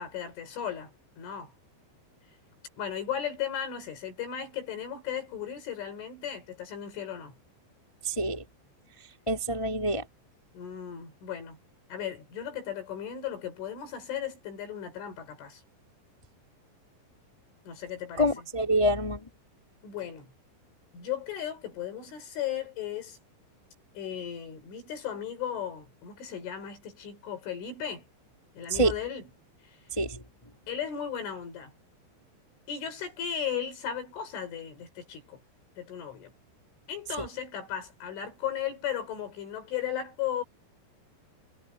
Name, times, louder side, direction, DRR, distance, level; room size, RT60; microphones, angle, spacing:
voice 1, 0.0-1.5 2.8-7.4 10.5-11.6 11.9-15.6 17.7-18.5 19.8-20.3 20.9-23.2 24.0-28.1 28.5-29.3 29.6-29.8 30.7-31.7 32.7-35.4 35.8-36.3 36.9-40.4, left 9 dB, 90° left, 7.8 m, -36 dB
voice 2, 8.0-8.4 9.3-10.0 18.2-19.2 28.7-28.9 30.0-30.2, right 1 dB, 15° left, 1.1 m, -26 dB
omnidirectional pair, 5.4 m